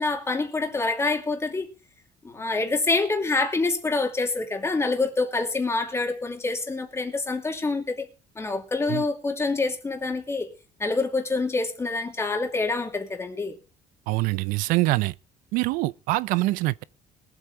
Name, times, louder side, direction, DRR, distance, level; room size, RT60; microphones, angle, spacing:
voice 1, 0.0-1.7 2.2-8.1 8.4-10.5 10.8-13.6, left 3 dB, 20° left, 2.6 m, -26 dB
voice 2, 14.1-15.1 15.5-16.8, right 20 dB, 85° right, 0.5 m, -24 dB
20.5 x 8.1 x 4.0 m
cardioid pair, 115°, 14 cm